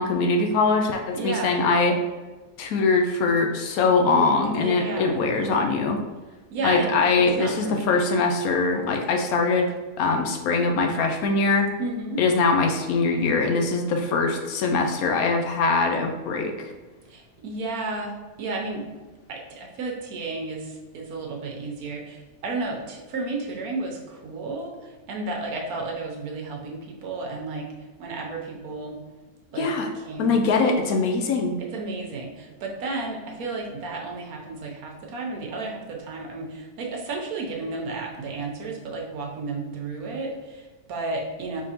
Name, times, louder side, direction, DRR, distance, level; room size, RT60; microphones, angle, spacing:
voice 1, 0.0-2.0 2.6-6.0 6.6-11.7 12.2-16.7 29.6-29.9 30.2-31.6, left 4 dB, 75° left, 3 dB, 1.0 m, -22 dB
voice 2, 1.1-1.6 4.6-5.2 6.5-6.9 7.4-8.0 11.8-12.2 17.1-18.8 19.3-27.7 28.0-29.0 29.5-29.7 30.1-30.7 31.7-41.6, right 3 dB, 75° right, 0 dB, 1.2 m, -32 dB
4.8 x 3.6 x 2.9 m, 1.2 s
omnidirectional pair, 1.6 m